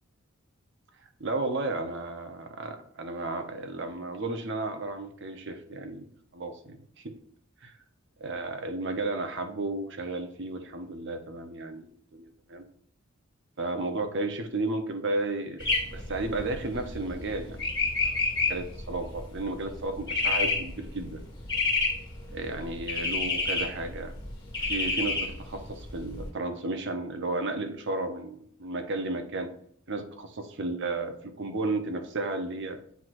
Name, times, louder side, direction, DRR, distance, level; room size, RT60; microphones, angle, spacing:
voice 1, 1.2-6.1 6.3-6.8 7.0-7.1 7.6-7.7 8.2-12.7 13.6-17.7 18.0-18.2 18.5-21.2 22.3-24.1 24.7-29.5 29.9-33.0, right 2 dB, 60° right, 6 dB, 0.9 m, -33 dB
sound 1, 15.6-26.3, left 3 dB, 20° left, 1.7 m, -30 dB
8.1 x 4.6 x 2.6 m, 0.62 s
head